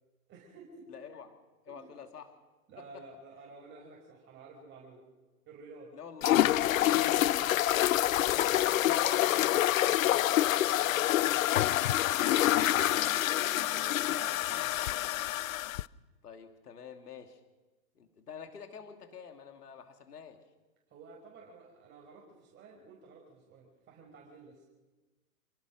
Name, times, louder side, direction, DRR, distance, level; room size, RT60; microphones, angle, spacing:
voice 1, 0.3-0.9 1.7-1.9 2.7-5.0 5.5-6.0 8.0-8.8 11.8-14.8 20.9-24.6, right 3 dB, 25° right, -1 dB, 5.2 m, -52 dB
voice 2, 0.9-1.3 1.7-2.3 2.8-3.0 5.9-6.4 6.9-7.6 8.2-11.8 16.2-17.4 18.0-20.4, left 6 dB, 85° left, 6 dB, 2.8 m, -48 dB
sound 1, 6.2-15.8, left 14 dB, 60° left, 0.7 m, -27 dB
27.5 x 17.5 x 6.4 m, 1.2 s
hypercardioid pair, 135°, 45 cm